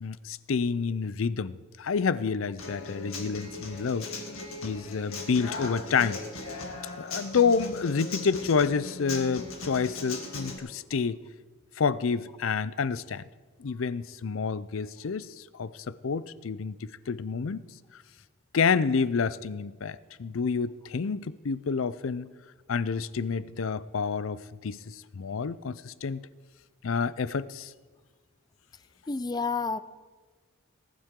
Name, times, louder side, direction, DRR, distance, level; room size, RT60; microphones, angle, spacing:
voice 1, 0.0-4.1 4.6-6.2 7.0-11.2 11.8-13.2 13.6-17.6 18.5-22.3 22.7-26.2 26.8-27.7, left 5 dB, 70° left, 17 dB, 0.5 m, -29 dB
Human voice / Acoustic guitar, 2.6-10.6, left 3 dB, 90° left, 2.2 m, -38 dB
voice 2, 29.1-29.8, left 4 dB, 20° left, 15 dB, 0.4 m, -29 dB
19.5 x 12.0 x 3.7 m, 1.4 s
head